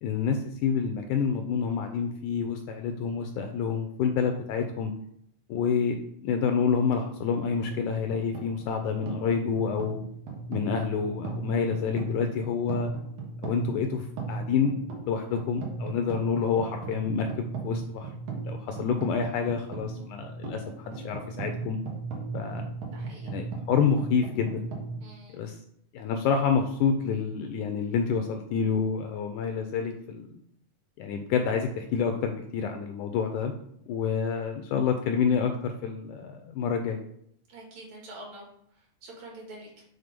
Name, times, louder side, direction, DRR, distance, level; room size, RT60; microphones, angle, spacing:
voice 1, 0.0-4.9 5.5-10.0 10.5-12.9 13.4-18.1 18.4-21.8 22.3-22.7 23.3-24.6 25.4-25.5 25.9-30.4 31.0-33.5 33.9-37.0, left 6 dB, 80° left, 5 dB, 1.9 m, -28 dB
sound 1, 7.4-25.0, right 4 dB, 80° right, 3.0 m, -37 dB
voice 2, 22.9-23.3 25.0-25.5 37.5-38.5 39.0-39.8, right 1 dB, 55° right, -3 dB, 3.0 m, -46 dB
6.9 x 3.9 x 5.1 m, 0.71 s
omnidirectional pair, 3.9 m